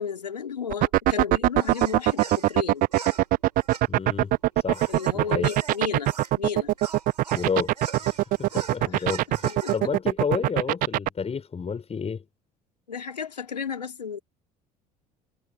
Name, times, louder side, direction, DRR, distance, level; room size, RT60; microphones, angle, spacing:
voice 1, 0.0-2.9 4.9-6.8 8.8-9.1 9.4-9.7 12.9-14.2, left 7 dB, 85° left, 3.7 m, -33 dB
sound 1, 0.7-11.1, right 17 dB, 45° right, 0.4 m, -21 dB
sound 2, 1.6-6.4 6.8-9.8, right 6 dB, 90° right, 7.2 m, -41 dB
voice 2, 3.9-5.5 7.3-7.7 8.0-9.5 9.7-12.2, left 6 dB, 30° left, 6.9 m, -31 dB
figure-of-eight pair, 60°, 20 cm